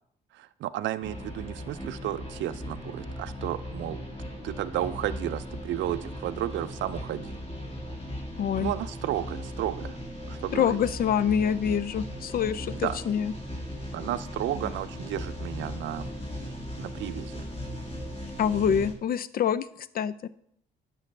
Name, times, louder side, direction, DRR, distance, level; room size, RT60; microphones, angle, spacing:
voice 1, 0.3-4.0 4.4-7.4 8.6-10.0 10.3-10.8 12.7-13.0 13.9-16.1 16.8-17.5, right 13 dB, 70° right, 12 dB, 0.4 m, -33 dB
sound 1, 1.0-18.9, equal, 30° left, 2.1 m, -38 dB
voice 2, 8.4-8.7 10.5-13.3 18.4-19.7 19.9-20.3, left 8 dB, 50° left, 16 dB, 0.4 m, -26 dB
9.8 x 6.3 x 3.3 m, 0.70 s
cardioid pair, 90°, 20 cm